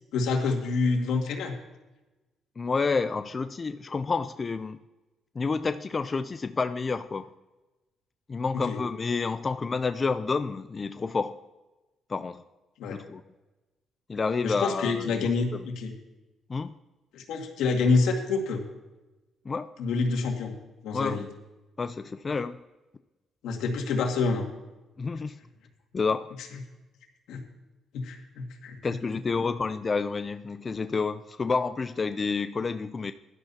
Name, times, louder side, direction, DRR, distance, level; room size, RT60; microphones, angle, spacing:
voice 1, 0.1-1.5 8.6-8.8 12.8-13.0 14.4-15.9 17.1-18.6 19.8-20.5 20.8-21.2 23.4-24.5 27.3-27.4 27.9-28.8, left 4 dB, 85° left, 3 dB, 2.1 m, -27 dB
voice 2, 2.6-4.8 5.4-7.3 8.3-11.4 12.1-12.4 12.9-13.2 14.1-15.3 16.5-16.7 19.5-19.7 20.9-21.3 21.8-22.6 25.0-25.4 25.9-26.3 28.8-33.1, left 4 dB, 35° left, 11 dB, 0.4 m, -29 dB
16.5 x 11.5 x 2.8 m, 1.1 s
cardioid pair, 90°, 0 cm